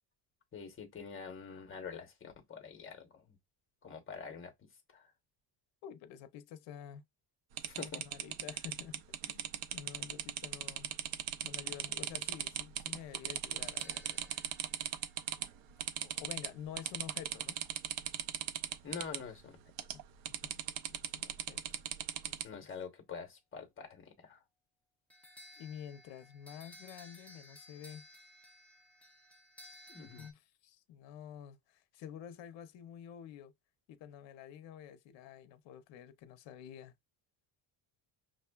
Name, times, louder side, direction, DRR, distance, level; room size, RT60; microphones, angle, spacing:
voice 1, 0.5-3.4 3.8-5.1 7.7-8.0 18.8-19.6 22.4-24.4 29.9-30.3, left 6 dB, 25° left, 0.9 m, -46 dB
voice 2, 5.8-7.0 7.8-10.9 11.4-14.5 16.0-17.6 19.9-21.6 22.3-22.7 25.6-28.1 30.2-33.5 33.9-36.9, left 9 dB, 65° left, 0.7 m, -50 dB
sound 1, 7.6-15.5 15.8-16.5 16.8-19.2 19.8-20.0 20.3-22.4, right 10 dB, 70° right, 0.6 m, -38 dB
sound 2, 13.6-15.8 25.1-30.3, left 1 dB, 5° left, 0.5 m, -57 dB
6.2 x 2.2 x 2.2 m
cardioid pair, 175°, 48 cm